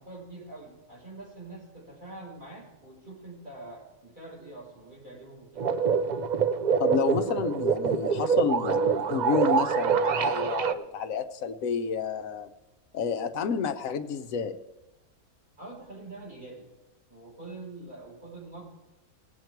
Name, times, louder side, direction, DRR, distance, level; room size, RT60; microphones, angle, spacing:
voice 1, 0.0-5.7 15.6-16.7 17.1-18.6, right 2 dB, 35° right, -5 dB, 5.1 m, -45 dB
sound 1, 5.6-10.7, right 6 dB, 80° right, 0.4 m, -25 dB
voice 2, 6.8-12.5 12.9-14.6, left 6 dB, 70° left, 8 dB, 1.2 m, -30 dB
19.0 x 8.1 x 4.6 m, 1.1 s
omnidirectional pair, 1.5 m